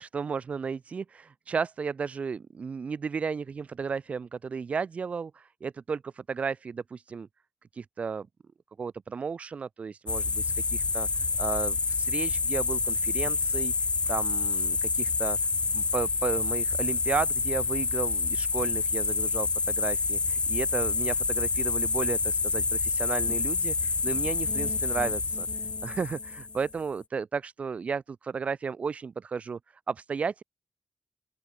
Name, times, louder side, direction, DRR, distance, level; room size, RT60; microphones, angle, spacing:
voice 1, 0.0-7.3 7.7-8.3 8.8-15.4 15.7-25.5 25.8-29.6 29.9-30.4, right 5 dB, 50° right, 0.5 m, -34 dB
sound 1, 10.1-26.8, left 4 dB, 35° left, 0.8 m, -28 dB
open air
wide cardioid pair, 150°, 3 cm